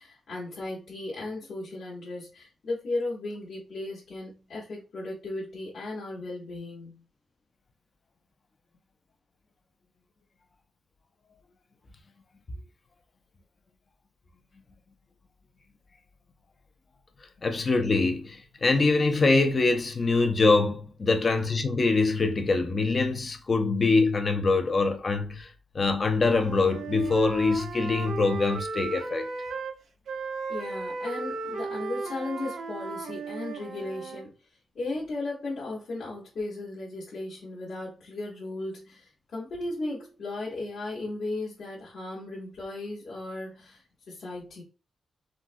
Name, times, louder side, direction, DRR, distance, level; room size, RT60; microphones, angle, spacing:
voice 1, 0.0-7.0 17.4-17.5 30.5-44.6, left 2 dB, 60° left, 0.9 m, -36 dB
voice 2, 17.4-29.3, left 3 dB, 30° left, 0.3 m, -24 dB
Wind instrument woodwind instrument, 26.2-29.8 30.1-34.3, right 4 dB, 90° right, 0.5 m, -35 dB
3.5 x 2.0 x 2.5 m
wide cardioid pair, 175°, 0 cm